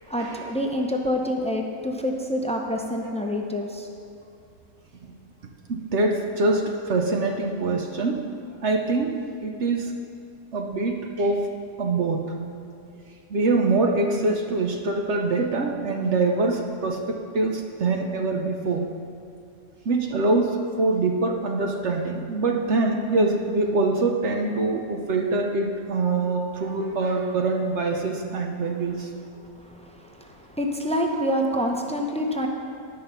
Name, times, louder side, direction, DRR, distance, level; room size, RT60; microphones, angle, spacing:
voice 1, 0.1-3.9 29.4-32.5, equal, 10° left, 2 dB, 0.4 m, -27 dB
voice 2, 5.7-8.3 8.6-9.9 10.5-11.5 11.8-12.4 13.3-18.9 19.9-29.1, right 3 dB, 55° right, 3 dB, 1.0 m, -24 dB
11.5 x 5.7 x 6.7 m, 2.5 s
omnidirectional pair, 1.6 m